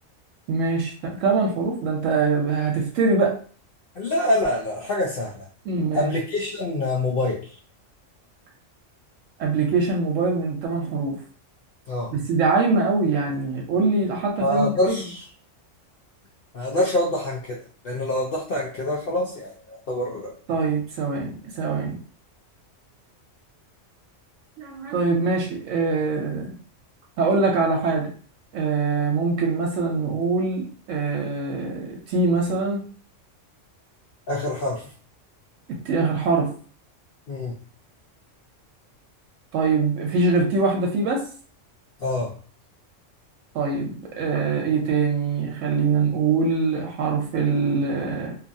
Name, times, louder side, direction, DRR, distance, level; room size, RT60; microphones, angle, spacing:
voice 1, 0.5-3.4 5.7-6.1 9.4-11.2 12.1-15.0 20.5-22.0 24.6-26.5 27.2-28.1 28.5-32.8 35.8-36.5 39.5-41.2 43.5-48.4, right 4 dB, 85° right, -1 dB, 1.0 m, -23 dB
voice 2, 4.0-5.4 5.9-7.5 11.9-12.1 14.4-15.2 16.5-17.6 17.8-20.3 34.3-34.9 37.3-37.5 42.0-42.3, left 1 dB, 60° left, -3 dB, 0.7 m, -25 dB
2.7 x 2.3 x 2.6 m, 0.42 s
omnidirectional pair, 1.3 m